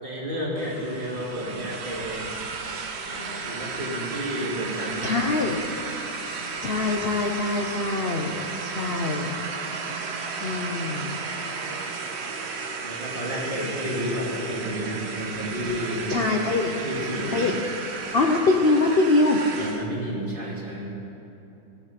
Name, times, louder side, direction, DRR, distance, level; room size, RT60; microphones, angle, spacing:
voice 1, 0.0-2.5 3.0-5.3 12.8-16.3 16.8-17.5 19.6-20.9, equal, 25° right, -4 dB, 2.3 m, -31 dB
sound 1, 0.6-19.9, right 4 dB, 55° right, 0.7 m, -34 dB
voice 2, 5.0-5.6 6.6-9.3 10.4-11.2 16.1-16.7 17.3-17.6 18.1-19.4, left 3 dB, 70° left, 1 dB, 0.5 m, -23 dB
18.0 x 7.0 x 5.9 m, 3.0 s
omnidirectional pair, 2.1 m